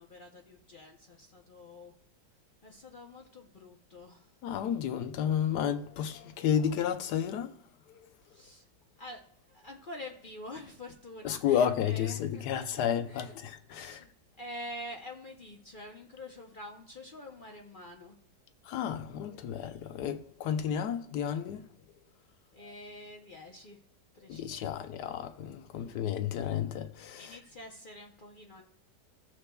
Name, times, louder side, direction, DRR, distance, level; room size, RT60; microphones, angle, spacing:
voice 1, 0.0-1.9 2.6-4.4 8.2-8.7 9.0-13.4 13.7-14.1 14.4-18.2 22.5-23.8 24.1-24.8 25.7-26.0 27.1-28.6, left 1 dB, 50° left, 0.6 m, -47 dB
voice 2, 4.4-7.5 7.9-8.1 11.2-14.0 18.6-21.7 24.3-27.4, left 9 dB, 70° left, 1.2 m, -32 dB
15.0 x 6.6 x 2.3 m
omnidirectional pair, 1.9 m